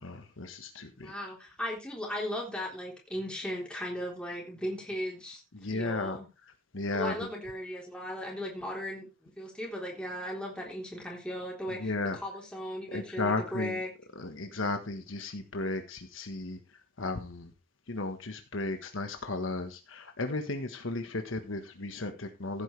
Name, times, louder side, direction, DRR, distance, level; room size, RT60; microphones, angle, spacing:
voice 1, 0.0-1.1 5.5-7.3 11.7-12.2 12.9-13.8 14.1-17.5 17.9-22.6, left 2 dB, 80° left, 6 dB, 1.4 m, -35 dB
voice 2, 1.0-5.4 5.7-6.3 6.9-11.9 12.2-13.9, equal, 5° left, -2 dB, 3.7 m, -37 dB
15.5 x 9.0 x 3.3 m, 0.29 s
head